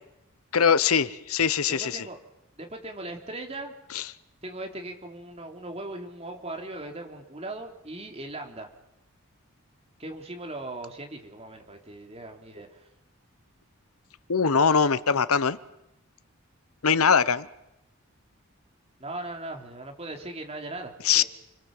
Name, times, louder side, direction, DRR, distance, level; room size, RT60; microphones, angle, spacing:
voice 1, 0.5-2.0 3.9-4.1 14.3-15.6 16.8-17.5 21.0-21.2, left 6 dB, 75° left, 0.9 m, -22 dB
voice 2, 1.7-2.2 2.5-3.7 4.4-8.7 10.0-12.9 19.0-21.2, right 2 dB, 30° right, 3.3 m, -39 dB
30.0 x 22.0 x 7.8 m
head